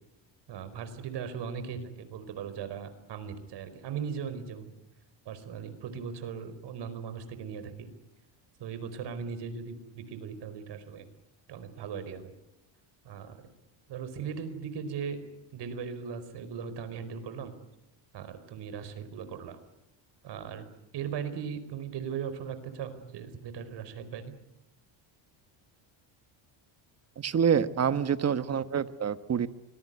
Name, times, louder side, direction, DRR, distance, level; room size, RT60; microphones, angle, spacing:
voice 1, 0.5-4.7 5.2-7.9 8.6-11.0 11.5-12.3 13.0-13.4 13.9-15.2 15.5-17.5 18.1-19.6 20.2-20.7 20.9-24.3, right 7 dB, 60° right, 11 dB, 4.8 m, -38 dB
voice 2, 27.2-29.5, right 7 dB, 30° right, 12 dB, 1.3 m, -27 dB
25.0 x 21.0 x 9.5 m, 0.89 s
cardioid pair, 125°, 47 cm